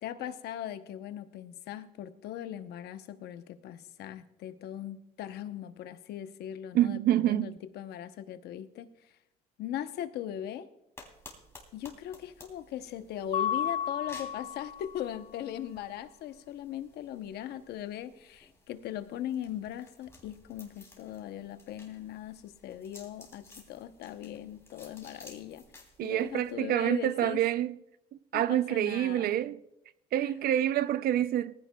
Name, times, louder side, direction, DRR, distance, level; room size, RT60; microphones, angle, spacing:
voice 1, 0.0-8.9 9.6-10.7 11.7-25.6 26.0-27.4 28.3-29.4, left 11 dB, 75° left, 0.8 m, -39 dB
voice 2, 6.7-7.6 26.0-27.8 28.3-29.6 30.1-31.5, right 12 dB, 65° right, 0.5 m, -27 dB
sound 1, 11.0-26.5, left 2 dB, 15° left, 3.0 m, -56 dB
Mallet percussion, 13.3-15.1, left 9 dB, 45° left, 0.5 m, -33 dB
18.5 x 15.0 x 2.3 m
cardioid pair, 110°, 17 cm